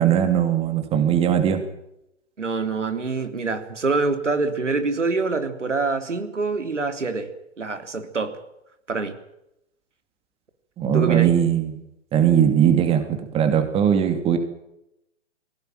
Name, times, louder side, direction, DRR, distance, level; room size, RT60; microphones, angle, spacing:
voice 1, 0.0-1.6 10.8-11.8 12.1-14.4, right 9 dB, 15° right, 7 dB, 2.6 m, -19 dB
voice 2, 2.4-7.3 7.6-8.3 8.9-9.1 10.9-11.3, right 3 dB, 90° right, 7 dB, 3.5 m, -25 dB
21.0 x 17.5 x 9.2 m, 0.83 s
hypercardioid pair, 140°, 35 cm